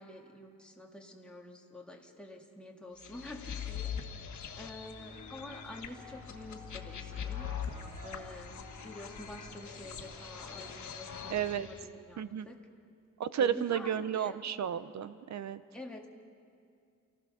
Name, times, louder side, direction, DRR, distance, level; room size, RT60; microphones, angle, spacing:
voice 1, 0.0-4.0 4.5-7.5 8.0-12.7 13.3-14.4 15.7-16.1, left 1 dB, 5° left, 0 dB, 2.0 m, -48 dB
sound 1, 3.0-11.8, left 7 dB, 65° left, 1.7 m, -42 dB
sound 2, 4.9-10.8, equal, 80° right, 5.5 m, -54 dB
voice 2, 11.3-11.7 12.2-12.5 13.2-15.6, right 9 dB, 60° right, 14 dB, 0.7 m, -32 dB
28.5 x 15.5 x 6.4 m, 2.4 s
cardioid pair, 120°, 32 cm